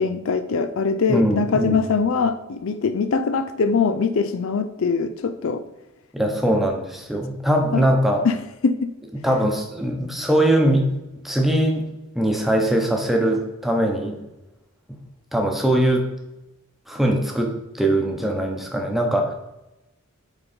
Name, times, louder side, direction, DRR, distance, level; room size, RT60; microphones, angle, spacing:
voice 1, 0.0-5.6 7.7-7.8 8.2-8.4 8.6-8.9, left 5 dB, 60° left, 11 dB, 0.4 m, -22 dB
voice 2, 1.1-1.8 6.1-8.2 9.1-10.9 11.2-11.8 12.1-14.2 14.9-15.0 15.3-16.1 16.9-19.3, right 1 dB, ahead, 1 dB, 1.0 m, -21 dB
8.7 x 3.9 x 4.4 m, 0.95 s
head